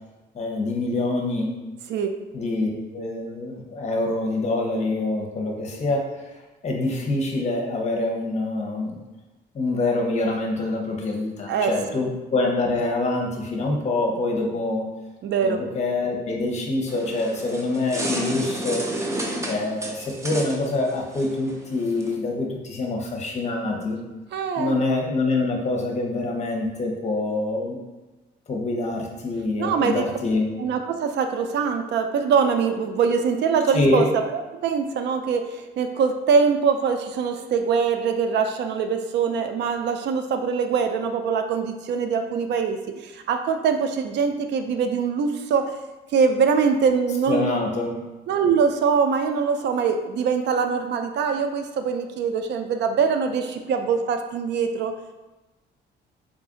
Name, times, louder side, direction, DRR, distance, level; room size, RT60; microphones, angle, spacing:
voice 1, 0.3-1.5 2.3-6.0 6.6-8.9 9.5-14.9 15.4-18.9 19.4-24.0 24.6-27.8 28.5-30.5 33.7-34.0 47.3-48.0, left 2 dB, 35° left, 0 dB, 0.8 m, -25 dB
voice 2, 15.2-15.6 24.3-24.8 29.6-30.0 30.6-45.7 46.1-47.6 48.3-54.9, right 6 dB, 65° right, 6 dB, 0.4 m, -23 dB
sound 1, 16.9-22.1, right 1 dB, 15° right, 0.6 m, -32 dB
3.8 x 2.4 x 3.7 m, 1.1 s
cardioid pair, 120°, 19 cm